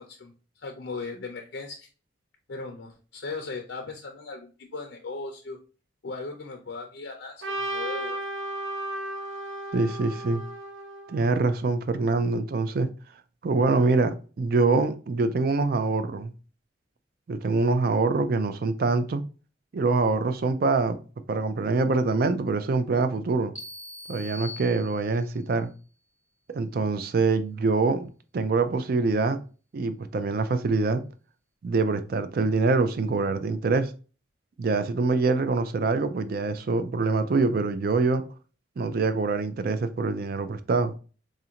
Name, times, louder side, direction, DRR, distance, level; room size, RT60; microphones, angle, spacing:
voice 1, 0.0-1.9 2.5-5.6 6.0-8.2, left 3 dB, 65° left, 0.5 m, -38 dB
Trumpet, 7.4-11.6, right 1 dB, 75° right, 0.7 m, -34 dB
voice 2, 9.7-10.4 11.1-12.9 13.4-16.3 17.3-19.2 19.7-21.0 21.3-23.5 24.1-25.7 26.5-29.4 29.7-31.0 31.6-33.9 34.6-38.2 38.8-40.9, right 3 dB, 50° right, 0.4 m, -25 dB
sound 1, 23.5-25.4, left 2 dB, 10° right, 0.7 m, -42 dB
4.1 x 2.5 x 2.8 m
head